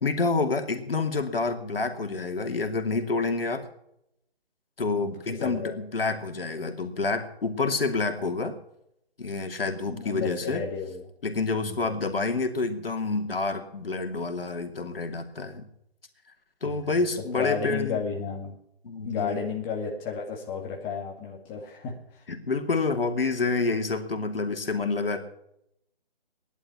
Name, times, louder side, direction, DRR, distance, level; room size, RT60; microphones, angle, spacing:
voice 1, 0.0-3.7 4.8-8.6 9.2-10.6 11.2-15.7 16.6-18.0 18.8-19.5 22.3-25.2, left 3 dB, 65° left, 5 dB, 2.7 m, -28 dB
voice 2, 5.0-5.8 9.9-11.0 11.6-11.9 16.6-18.5 19.0-22.2, left 6 dB, 15° left, -1 dB, 2.0 m, -33 dB
18.0 x 11.5 x 5.9 m, 0.77 s
figure-of-eight pair, 150°, 31 cm